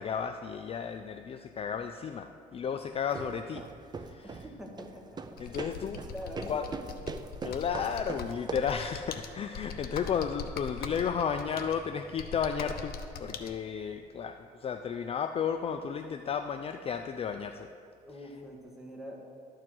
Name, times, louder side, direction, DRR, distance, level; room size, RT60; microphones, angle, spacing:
voice 1, 0.0-3.6 4.0-4.4 5.4-6.0 6.5-6.6 7.4-17.7, left 7 dB, 35° left, 7 dB, 0.4 m, -33 dB
sound 1, 2.9-8.8, right 4 dB, 25° right, 0.5 m, -42 dB
voice 2, 4.4-5.4 5.9-6.9 18.0-19.2, equal, ahead, -2 dB, 1.8 m, -44 dB
Computer keyboard, 5.4-13.5, left 6 dB, 65° left, 0.8 m, -42 dB
12.0 x 4.6 x 7.7 m, 2.3 s
cardioid pair, 110°, 17 cm